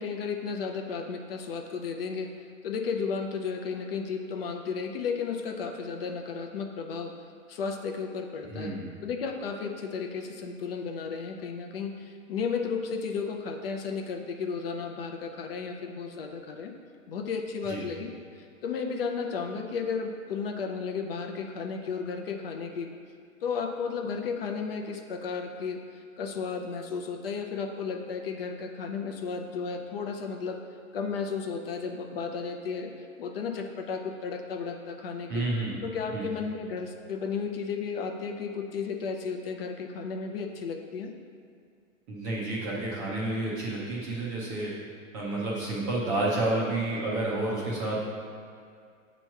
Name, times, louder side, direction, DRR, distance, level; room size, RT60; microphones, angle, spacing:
voice 1, 0.0-2.3 2.6-7.1 7.5-16.7 17.1-22.9 23.4-25.8 26.2-30.6 30.9-32.9 33.2-35.5 35.8-41.1, left 5 dB, 45° left, 4 dB, 0.6 m, -33 dB
voice 2, 8.4-8.9 17.7-17.8 35.3-35.8 36.1-36.3 42.1-44.7 45.1-48.0, right 2 dB, 15° right, -7 dB, 0.5 m, -30 dB
8.0 x 3.0 x 5.8 m, 2.2 s
hypercardioid pair, 160°, 41 cm